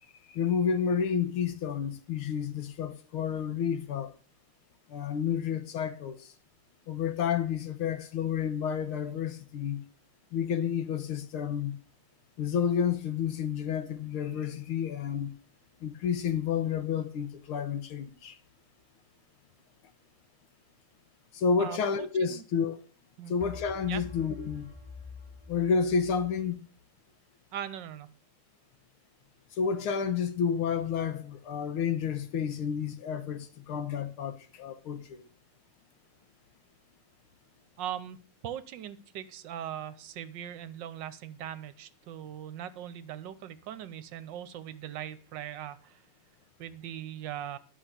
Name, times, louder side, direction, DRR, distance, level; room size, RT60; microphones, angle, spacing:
voice 1, 0.3-4.1 4.9-6.3 6.9-9.8 10.3-11.8 12.4-15.3 15.8-18.4 21.3-22.8 23.3-24.7 25.5-26.6 29.5-35.3, left 7 dB, 75° left, 2.1 m, -30 dB
voice 2, 21.6-22.4 23.2-23.3 23.9-24.0 27.5-28.1 37.8-38.2 38.4-46.0 46.6-47.6, right 10 dB, 65° right, 1.4 m, -40 dB
sound 1, 23.4-26.4, left 4 dB, 10° left, 5.0 m, -47 dB
11.0 x 6.0 x 8.1 m
omnidirectional pair, 2.4 m